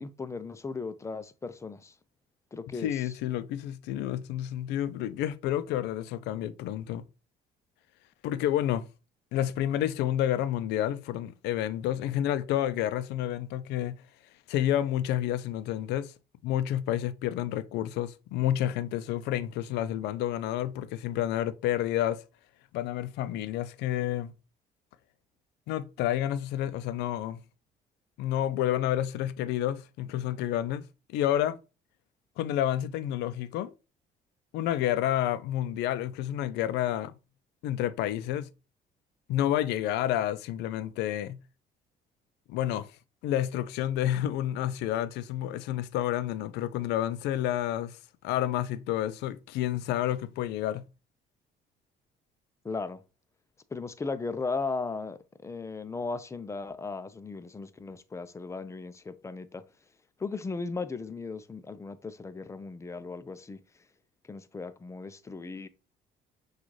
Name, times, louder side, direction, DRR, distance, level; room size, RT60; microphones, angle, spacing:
voice 1, 0.0-1.9 2.5-2.9 52.6-53.0 53.7-59.6 60.2-63.6 64.3-65.7, left 4 dB, 15° left, 0.4 m, -36 dB
voice 2, 2.7-7.0 8.2-8.9 9.3-14.0 14.5-16.1 16.4-22.2 22.7-24.3 25.7-27.4 28.2-30.8 31.1-31.6 32.4-33.7 34.5-37.1 37.6-38.5 39.3-41.4 42.5-42.9 43.2-48.0 48.2-50.8, left 12 dB, 85° left, 0.4 m, -29 dB
6.2 x 2.4 x 3.1 m
cardioid pair, 110°, 17 cm